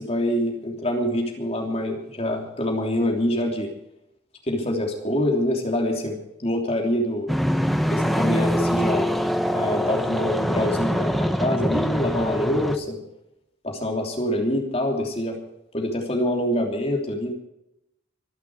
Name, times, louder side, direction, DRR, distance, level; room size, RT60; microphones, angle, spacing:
voice 1, 0.0-3.7 4.5-6.2 6.4-7.3 7.9-9.1 9.5-13.0 13.6-15.4 15.7-17.3, left 1 dB, 30° left, 1 dB, 3.2 m, -25 dB
sound 1, 7.3-12.8, equal, ahead, 0.9 m, -24 dB
24.5 x 11.0 x 4.8 m, 0.84 s
head